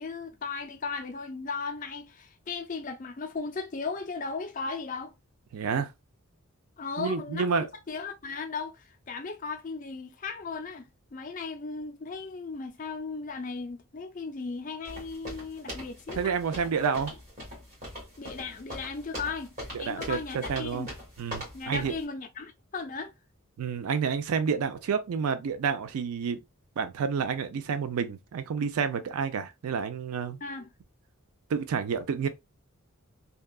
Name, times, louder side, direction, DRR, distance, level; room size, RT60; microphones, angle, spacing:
voice 1, 0.0-5.1 6.8-16.3 18.2-19.5 19.8-20.9 21.5-23.1 30.4-30.7, left 4 dB, 35° left, 0.4 m, -36 dB
voice 2, 5.5-5.9 7.0-7.7 16.2-17.1 19.7-20.9 21.2-21.9 23.6-26.4 26.8-30.4 31.5-32.3, right 6 dB, 80° right, 0.4 m, -29 dB
sound 1, 14.8-22.0, equal, 35° right, 1.5 m, -41 dB
2.7 x 2.2 x 2.2 m
head